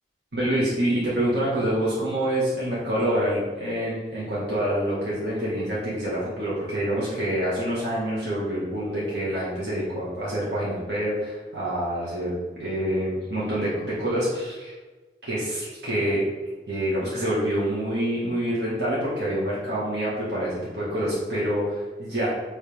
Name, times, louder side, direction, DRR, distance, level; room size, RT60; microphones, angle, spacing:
voice 1, 0.3-14.7 15.2-16.2 16.7-22.3, right 1 dB, 65° right, -8 dB, 1.9 m, -26 dB
8.7 x 4.0 x 3.6 m, 1.3 s
head